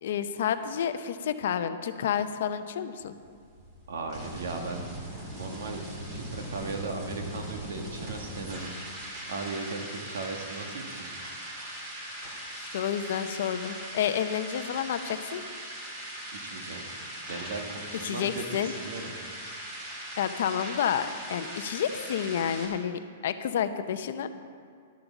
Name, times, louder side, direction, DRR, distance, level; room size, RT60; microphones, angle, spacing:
voice 1, 0.0-3.1 12.5-15.4 18.0-18.7 20.2-24.3, left 9 dB, 50° left, 10 dB, 0.6 m, -30 dB
sound 1, 3.0-22.7, right 1 dB, 25° right, 2.2 m, -40 dB
voice 2, 3.9-4.8 5.3-8.7 9.0-11.1 16.3-16.9 17.3-19.1, right 3 dB, 75° right, 3 dB, 1.7 m, -37 dB
12.0 x 7.8 x 7.2 m, 2.2 s
hypercardioid pair, 175°, 0 cm